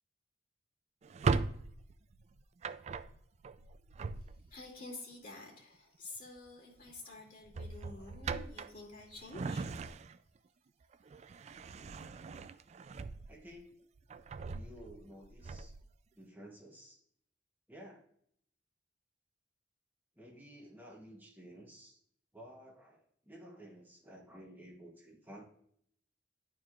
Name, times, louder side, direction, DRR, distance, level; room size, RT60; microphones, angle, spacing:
Drawer open or close, 1.0-4.7 6.2-6.5 6.8-7.0 7.5-10.4 10.8-13.6 14.0-15.9, right 4 dB, 40° right, 0.3 m, -39 dB
voice 1, 4.2-9.8, left 2 dB, 55° left, -2 dB, 2.5 m, -50 dB
voice 2, 13.3-13.7 14.5-15.8 16.1-17.0 17.7-18.0 20.2-22.0 22.3-25.4, equal, 10° right, -1 dB, 1.0 m, -53 dB
11.0 x 4.5 x 2.4 m, 0.67 s
head